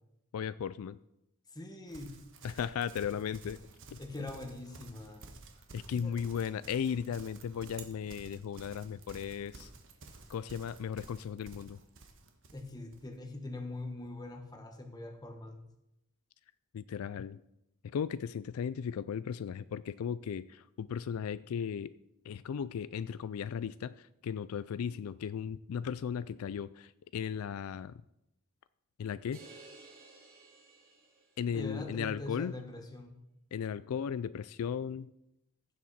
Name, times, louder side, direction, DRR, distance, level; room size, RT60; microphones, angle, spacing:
voice 1, 0.3-1.0 2.4-3.6 3.9-4.0 5.7-9.7 10.3-11.8 16.7-17.4 17.9-21.9 22.3-27.9 29.0-29.4 31.4-32.5 33.5-35.1, left 7 dB, 75° left, 16 dB, 0.3 m, -36 dB
voice 2, 1.5-2.3 4.0-5.2 5.9-6.2 12.5-15.6 31.5-33.2, left 2 dB, 20° left, 4 dB, 1.4 m, -43 dB
Livestock farm animals working animals, 1.9-13.1, right 3 dB, 60° right, 1.3 m, -53 dB
sound 1, 29.3-31.7, right 3 dB, 45° right, 3.5 m, -55 dB
15.5 x 7.4 x 4.2 m, 0.83 s
head